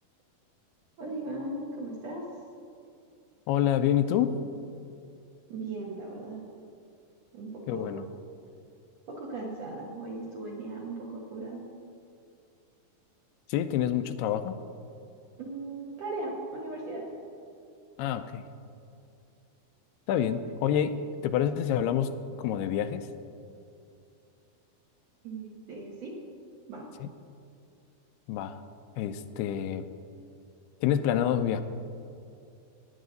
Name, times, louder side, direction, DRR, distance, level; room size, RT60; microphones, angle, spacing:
voice 1, 1.0-2.3 5.5-6.4 7.3-7.9 9.1-11.7 15.4-17.1 20.4-20.6 25.2-26.2 26.7-26.9, right 2 dB, 60° right, -3 dB, 1.9 m, -38 dB
voice 2, 3.5-4.4 7.7-8.0 13.5-14.6 18.0-18.4 20.1-20.9 21.2-22.1 22.4-23.0 27.0-27.1 28.3-28.6 29.0-29.9 30.8-31.6, left 10 dB, 85° left, 11 dB, 2.6 m, -27 dB
17.5 x 9.9 x 4.0 m, 2.5 s
omnidirectional pair, 4.5 m